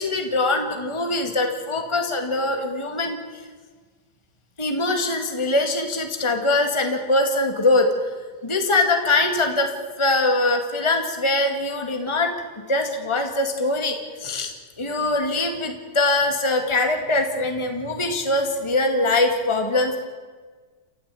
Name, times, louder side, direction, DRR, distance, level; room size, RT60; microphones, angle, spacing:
voice 1, 0.0-3.2 4.6-7.9 8.4-9.7 10.0-12.3 12.7-14.5 14.8-20.0, left 2 dB, 15° left, 4 dB, 2.0 m, -22 dB
29.0 x 13.5 x 8.4 m, 1.4 s
omnidirectional pair, 2.2 m